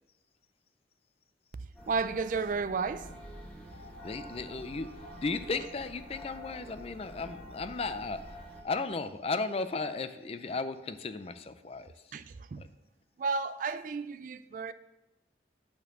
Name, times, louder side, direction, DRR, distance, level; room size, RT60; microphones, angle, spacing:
sound 1, 1.7-8.6, equal, 5° left, 1.4 m, -48 dB
voice 1, 1.9-3.1 12.1-12.6 13.2-14.7, right 4 dB, 45° right, 0.3 m, -32 dB
sound 2, 3.7-12.2 12.5-12.6 12.8-12.9, left 1 dB, 75° right, 1.4 m, -56 dB
voice 2, 4.0-4.9 5.2-8.4 8.6-11.9 12.6-12.7, left 3 dB, 35° left, 0.4 m, -35 dB
8.6 x 4.4 x 6.7 m
head